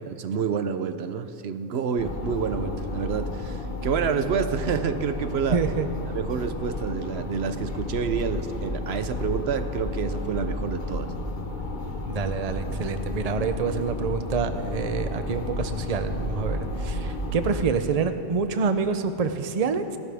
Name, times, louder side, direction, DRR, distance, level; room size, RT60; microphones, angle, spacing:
voice 1, 0.1-5.6 6.1-11.1, right 6 dB, 75° right, 10 dB, 1.0 m, -28 dB
sound 1, 2.0-17.6, left 2 dB, 50° left, 1.1 m, -32 dB
voice 2, 5.5-5.9 12.1-20.0, right 5 dB, 40° right, 9 dB, 0.7 m, -27 dB
28.0 x 12.5 x 3.5 m, 2.9 s
omnidirectional pair, 1.1 m